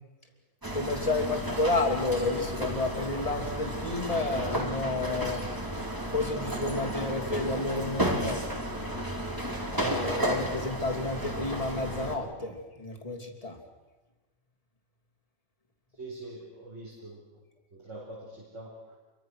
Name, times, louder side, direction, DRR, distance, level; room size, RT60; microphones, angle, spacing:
sound 1, 0.6-12.2, right 1 dB, 15° right, 2.6 m, -33 dB
voice 1, 0.7-5.4 6.1-8.5 9.7-13.6, left 2 dB, 25° left, 2 dB, 3.0 m, -31 dB
voice 2, 16.0-17.2 17.7-19.0, right 2 dB, 55° right, -4 dB, 5.1 m, -44 dB
28.0 x 24.0 x 6.4 m, 1.2 s
omnidirectional pair, 1.5 m